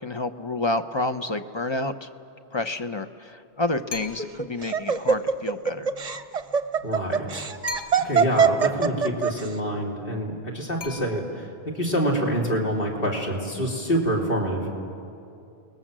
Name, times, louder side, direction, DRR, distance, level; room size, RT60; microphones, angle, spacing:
voice 1, 0.0-2.1 2.5-5.9, left 2 dB, 30° left, 9 dB, 0.8 m, -29 dB
sound 1, 3.9-4.5 7.7-8.4 10.8-11.6, left 5 dB, 75° left, 1.8 m, -39 dB
Laughter, 4.0-9.5, right 6 dB, 40° right, 0.8 m, -23 dB
voice 2, 6.8-7.5 8.0-14.7, equal, 60° left, -1 dB, 3.5 m, -26 dB
29.5 x 20.5 x 7.5 m, 2.6 s
omnidirectional pair, 1.1 m